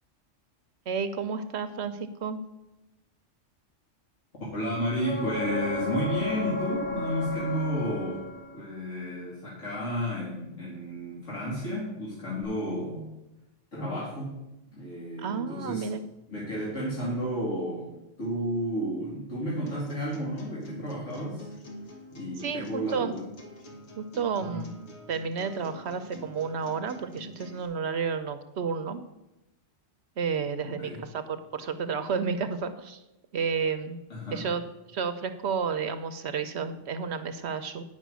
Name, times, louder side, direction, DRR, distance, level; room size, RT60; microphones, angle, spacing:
voice 1, 0.9-2.4 15.2-16.0 22.4-23.1 24.0-24.7 25.1-29.0 30.2-33.0 33.3-34.0 34.3-34.6 34.9-37.8, right 6 dB, 65° right, 10 dB, 0.9 m, -31 dB
voice 2, 4.5-8.2 8.5-13.2 13.7-14.4 14.7-15.9 16.3-21.5 22.1-23.2 24.4-24.7 30.6-31.0 34.1-34.4, equal, 85° left, -5 dB, 2.2 m, -32 dB
sound 1, 5.0-8.7 12.4-12.5, left 2 dB, 10° left, 2.1 m, -33 dB
sound 2, 19.7-27.7, equal, 65° left, 1.6 m, -46 dB
9.2 x 5.8 x 6.2 m, 0.93 s
omnidirectional pair, 1.3 m